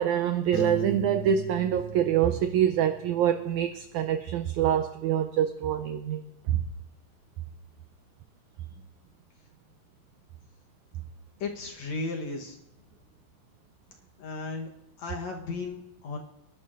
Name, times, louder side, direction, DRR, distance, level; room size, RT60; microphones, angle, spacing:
voice 1, 0.0-6.2 6.5-6.6, right 10 dB, 85° right, 1.7 m, -25 dB
Piano, 0.5-3.3, right 2 dB, 10° right, 2.0 m, -37 dB
voice 2, 11.4-12.6 14.2-14.7 15.0-16.2, left 3 dB, 65° left, 2.0 m, -35 dB
27.0 x 11.5 x 2.5 m
omnidirectional pair, 4.0 m